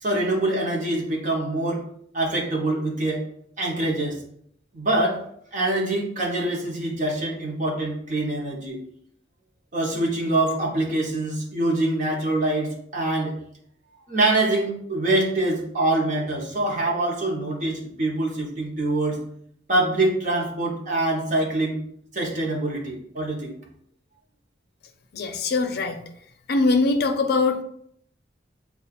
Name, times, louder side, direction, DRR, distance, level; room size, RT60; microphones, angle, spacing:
voice 1, 0.0-1.8 2.1-3.2 3.6-4.2 4.7-5.2 5.5-8.8 9.7-13.3 14.1-19.2 19.7-21.8 22.1-23.5, right 2 dB, 40° right, -1 dB, 0.9 m, -24 dB
voice 2, 25.1-26.0 26.5-27.6, left 3 dB, 55° left, 6 dB, 0.5 m, -22 dB
6.3 x 2.4 x 2.4 m, 0.67 s
head